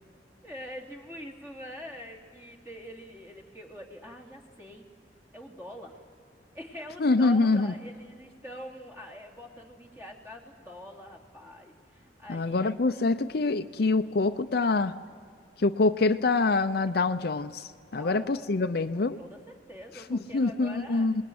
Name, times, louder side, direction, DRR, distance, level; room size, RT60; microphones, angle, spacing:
voice 1, 0.4-4.9 5.3-6.0 6.5-12.7 18.0-18.5 18.9-21.2, equal, 15° right, 1 dB, 2.9 m, -45 dB
voice 2, 7.0-7.7 12.3-14.9 15.6-19.2 20.1-21.2, left 3 dB, 55° left, 9 dB, 0.6 m, -25 dB
26.5 x 20.5 x 9.5 m, 2.2 s
head